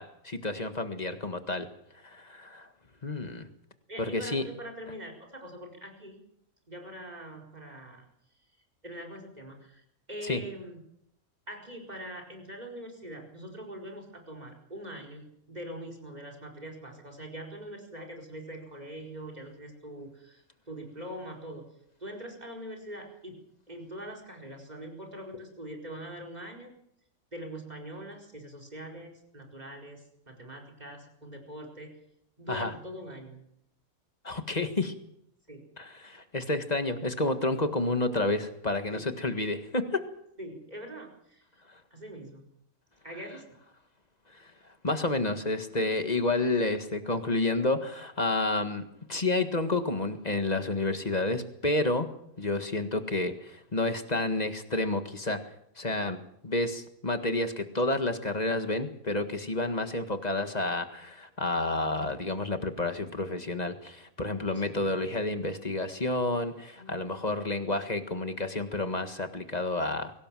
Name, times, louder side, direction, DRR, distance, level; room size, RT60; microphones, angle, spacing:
voice 1, 0.0-1.7 2.0-2.7 3.0-3.5 4.0-4.5 10.2-10.4 32.5-32.7 34.2-34.9 35.8-40.0 44.8-48.8 49.1-52.1 52.4-55.4 55.8-56.2 56.4-70.1, left 2 dB, 30° left, 8 dB, 1.7 m, -30 dB
voice 2, 3.9-6.2 6.7-8.0 8.8-9.8 10.1-10.8 11.5-21.7 22.0-23.4 23.7-26.7 27.3-31.9 32.4-33.4 35.5-35.7 38.9-39.1 40.4-41.4 41.9-42.4 43.0-43.5 59.5-59.8 64.5-65.1 66.7-67.1, right 1 dB, 30° right, 4 dB, 4.8 m, -43 dB
23.5 x 18.0 x 7.7 m, 0.76 s
omnidirectional pair, 1.5 m